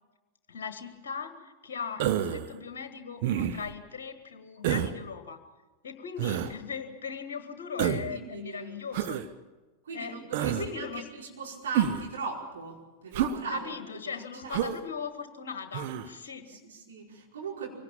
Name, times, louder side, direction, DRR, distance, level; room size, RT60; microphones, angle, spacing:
voice 1, 0.5-5.4 5.8-9.2 9.9-11.0 13.5-16.5, left 6 dB, 60° left, 9 dB, 1.4 m, -39 dB
Human voice, 2.0-2.5 3.2-3.7 4.6-5.0 6.2-6.5 7.8-8.1 8.9-9.3 10.3-10.7 11.7-12.1 13.1-13.4 14.5-14.8 15.7-16.1, right 10 dB, 50° right, 1.0 m, -28 dB
voice 2, 8.1-8.8 9.8-10.9 11.2-13.8 14.1-14.6 16.4-17.7, right 5 dB, 65° right, -2 dB, 5.0 m, -39 dB
24.0 x 18.0 x 7.2 m, 1.2 s
figure-of-eight pair, 90°, 0 cm